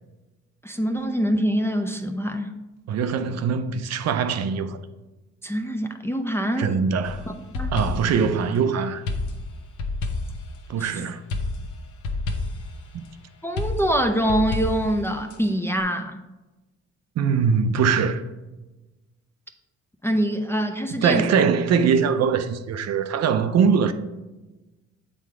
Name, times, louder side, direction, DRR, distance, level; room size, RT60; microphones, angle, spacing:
voice 1, 0.6-2.5 5.4-6.7 7.5-7.7 10.8-10.9 13.4-16.2 20.0-21.4, equal, 10° left, 0.4 m, -24 dB
voice 2, 2.9-4.8 6.6-7.3 7.7-9.0 10.7-11.2 12.9-13.0 17.2-18.2 21.0-23.9, right 6 dB, 60° right, 0.5 m, -22 dB
sound 1, 7.0-8.3 9.1-10.9 11.3-12.8 13.6-15.4, left 3 dB, 75° left, 0.9 m, -29 dB
7.6 x 3.5 x 4.7 m
cardioid pair, 90°, 30 cm